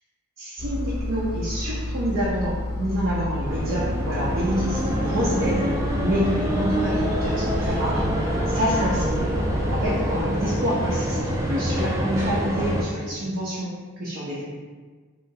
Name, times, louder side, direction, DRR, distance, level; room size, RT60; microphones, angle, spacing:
voice 1, 0.4-5.7 6.0-8.0 8.5-9.2 9.7-13.7 14.0-14.4, equal, 70° right, -7 dB, 0.5 m, -27 dB
Engine, 0.6-10.2, left 1 dB, 45° left, 0.6 m, -30 dB
sound 1, 3.5-12.8, right 1 dB, 15° right, 0.3 m, -26 dB
2.8 x 2.4 x 2.6 m, 1.4 s
head